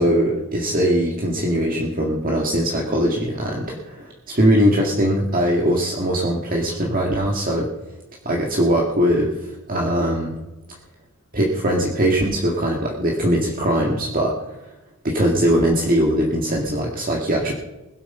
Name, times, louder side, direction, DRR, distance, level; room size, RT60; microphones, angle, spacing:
voice 1, 0.0-7.7 8.3-10.4 11.3-14.6 15.0-17.5, equal, 40° right, -1 dB, 2.0 m, -21 dB
20.5 x 8.4 x 5.6 m, 1.0 s
head